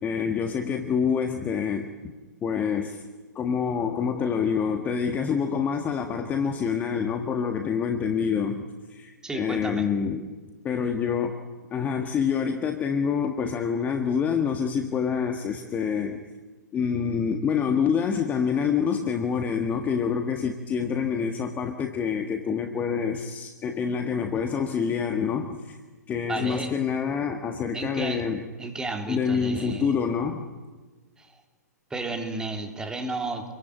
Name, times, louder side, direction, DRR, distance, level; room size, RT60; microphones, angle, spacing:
voice 1, 0.0-2.1 2.4-3.0 3.3-10.3 10.6-11.4 11.7-16.2 16.7-25.8 26.1-28.4 29.1-30.5, left 6 dB, 15° left, 5 dB, 1.6 m, -27 dB
voice 2, 9.2-9.9 26.3-26.7 27.7-28.3 28.6-29.9 31.2-31.4 31.9-33.6, right 2 dB, 5° right, 4 dB, 3.2 m, -33 dB
27.5 x 23.0 x 9.1 m, 1.3 s
figure-of-eight pair, 120°, 9 cm